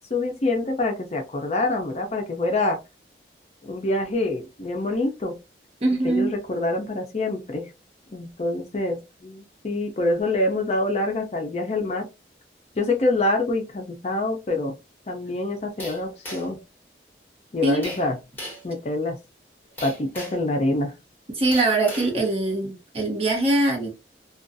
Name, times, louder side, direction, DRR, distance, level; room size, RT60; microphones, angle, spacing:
voice 1, 0.1-2.8 3.6-5.4 6.0-7.7 8.1-12.1 12.8-14.7 15.1-16.6 17.5-18.2 18.6-19.2 19.8-20.9, left 2 dB, 40° left, 0.5 m, -26 dB
voice 2, 5.8-6.3 17.6-17.8 21.3-23.9, right 2 dB, 35° right, 0.9 m, -22 dB
sound 1, 15.8-16.6 17.8-18.1 18.4-18.7 19.8-20.5 21.5-22.1, left 1 dB, 10° left, 1.3 m, -37 dB
2.4 x 2.3 x 2.5 m
head